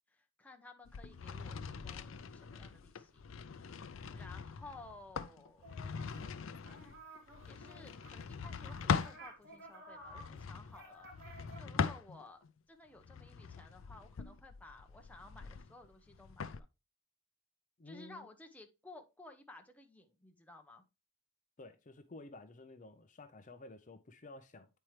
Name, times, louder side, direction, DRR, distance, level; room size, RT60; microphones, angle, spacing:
voice 1, 0.1-3.2 3.5-5.8 7.0-7.2 7.5-16.7 17.8-20.8, left 2 dB, 10° left, 0.8 m, -56 dB
sound 1, 0.9-9.2 10.0-12.5 13.0-16.6, left 5 dB, 85° left, 0.5 m, -41 dB
sound 2, 5.6-6.4 6.6-11.6, right 1 dB, 55° right, 2.2 m, -54 dB
voice 2, 17.8-18.3 21.6-24.7, left 2 dB, 40° left, 0.6 m, -52 dB
8.7 x 4.5 x 3.2 m
head